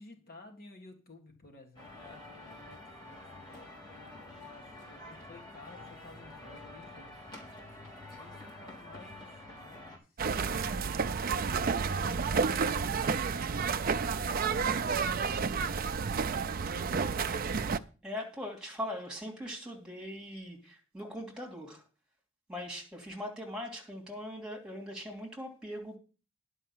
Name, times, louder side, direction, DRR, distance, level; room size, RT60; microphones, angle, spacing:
voice 1, 0.0-7.1 8.2-10.1 11.9-17.4, left 2 dB, 45° left, 1.8 m, -55 dB
sound 1, 1.8-10.0, left 2 dB, 20° left, 3.4 m, -48 dB
sound 2, 10.2-17.8, right 5 dB, 45° right, 0.5 m, -30 dB
voice 2, 18.0-21.8 22.5-26.0, equal, 5° right, 2.9 m, -40 dB
10.5 x 5.5 x 7.3 m
head